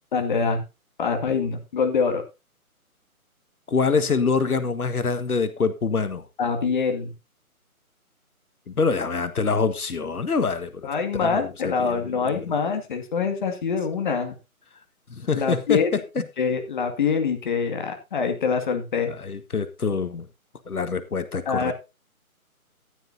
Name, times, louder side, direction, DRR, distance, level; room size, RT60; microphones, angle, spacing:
voice 1, 0.1-0.6 1.0-2.2 6.4-7.1 10.8-14.4 15.3-15.9 16.4-19.1 21.5-21.7, left 5 dB, 35° left, 5 dB, 2.1 m, -24 dB
voice 2, 3.7-6.2 8.8-10.9 11.2-12.5 15.1-15.8 16.1-16.2 19.2-20.3 20.7-21.7, left 5 dB, 80° left, 11 dB, 1.6 m, -25 dB
14.5 x 10.5 x 2.7 m, 0.27 s
figure-of-eight pair, 160°, 44 cm